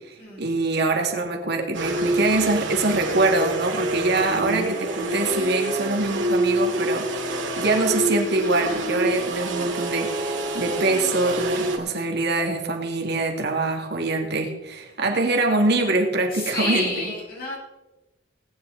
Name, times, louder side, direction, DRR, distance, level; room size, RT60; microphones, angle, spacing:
voice 1, 0.0-16.9, right 2 dB, 65° right, 3 dB, 2.1 m, -24 dB
sound 1, 1.7-11.8, right 2 dB, 85° right, 2.4 m, -26 dB
voice 2, 16.3-17.6, left 2 dB, 55° left, -3 dB, 5.5 m, -29 dB
19.0 x 10.0 x 3.9 m, 1.1 s
head